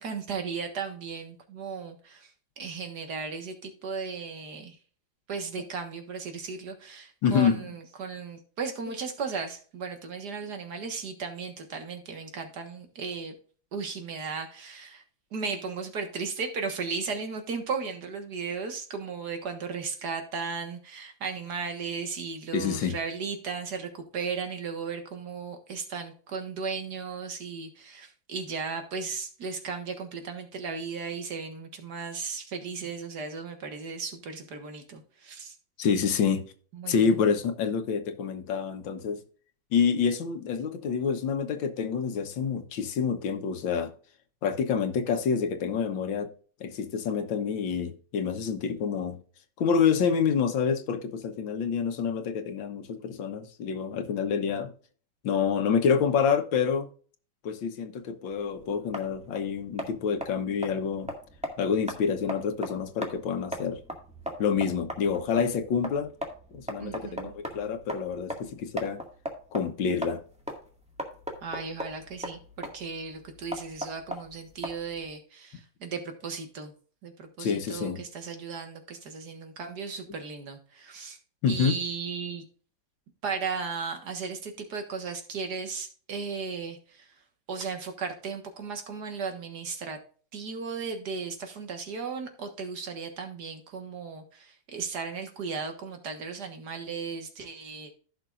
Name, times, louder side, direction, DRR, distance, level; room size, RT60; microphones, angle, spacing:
voice 1, 0.0-4.8 5.3-13.3 13.7-15.0 15.3-35.6 36.7-37.2 66.8-67.3 71.4-76.7 77.0-81.2 81.5-82.5 83.2-87.1 87.5-90.0 90.3-97.9, right 5 dB, 60° right, 2.0 m, -36 dB
voice 2, 7.2-7.6 22.5-23.0 35.8-36.5 36.9-39.2 39.7-43.9 44.4-46.3 46.6-49.2 49.6-54.7 55.2-56.9 57.4-61.1 61.6-63.8 64.4-66.1 66.5-69.0 69.5-70.2 77.4-78.0 81.4-81.7, left 6 dB, 85° left, 1.8 m, -27 dB
sound 1, 58.3-75.1, equal, 5° right, 1.7 m, -39 dB
15.0 x 6.0 x 2.5 m
omnidirectional pair, 2.0 m